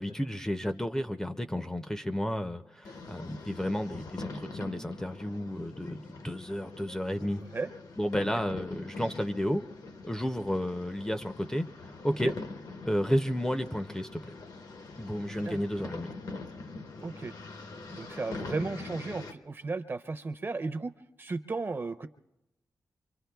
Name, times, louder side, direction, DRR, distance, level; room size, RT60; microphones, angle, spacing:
voice 1, 0.0-7.4 8.0-9.6 10.0-11.7 12.0-12.3 12.8-14.3 15.0-16.1, equal, 10° left, 8 dB, 0.5 m, -32 dB
sound 1, 2.8-19.3, left 3 dB, 75° left, 0.9 m, -44 dB
voice 2, 7.2-7.7 8.2-8.3 12.2-12.3 15.4-15.9 17.0-17.3 17.9-22.1, right 3 dB, 35° right, 9 dB, 0.6 m, -35 dB
25.0 x 24.0 x 2.3 m, 0.92 s
wide cardioid pair, 140°, 7 cm